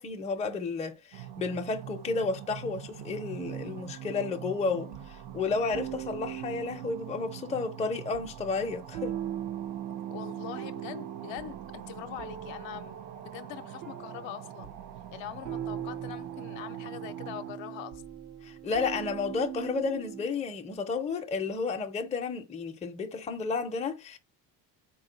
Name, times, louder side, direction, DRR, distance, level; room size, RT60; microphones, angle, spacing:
voice 1, 0.0-9.2 18.4-24.2, left 4 dB, 15° left, 0.5 m, -32 dB
sound 1, 1.1-17.5, right 11 dB, 60° right, 0.6 m, -45 dB
sound 2, 3.4-20.2, right 10 dB, 90° right, 0.8 m, -41 dB
voice 2, 9.9-13.0 13.2-14.8 15.1-18.0, left 11 dB, 65° left, 0.6 m, -42 dB
3.7 x 2.2 x 3.7 m
supercardioid pair, 75°, 50 cm